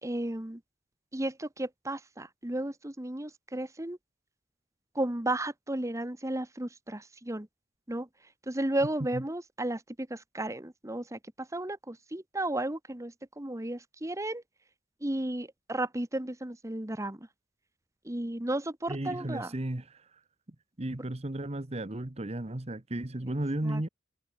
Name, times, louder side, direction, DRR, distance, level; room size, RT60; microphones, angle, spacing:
voice 1, 0.0-0.6 1.1-4.0 4.9-7.5 7.9-8.1 8.5-14.4 15.0-17.3 18.0-19.5 23.6-23.9, right 1 dB, 15° right, 1.2 m, -34 dB
voice 2, 18.9-20.0 20.8-23.9, right 1 dB, 35° right, 1.2 m, -34 dB
head